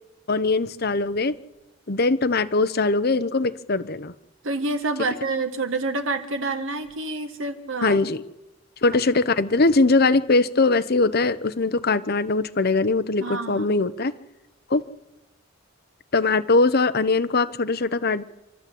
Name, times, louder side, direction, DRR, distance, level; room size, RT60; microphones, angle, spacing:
voice 1, 0.3-1.3 1.9-4.1 7.8-8.2 8.8-14.1 14.7-14.8 16.1-18.2, left 3 dB, 50° left, 13 dB, 0.9 m, -21 dB
voice 2, 4.4-8.0 13.2-13.8, right 3 dB, 80° right, 8 dB, 1.9 m, -28 dB
27.0 x 12.5 x 8.6 m, 1.0 s
head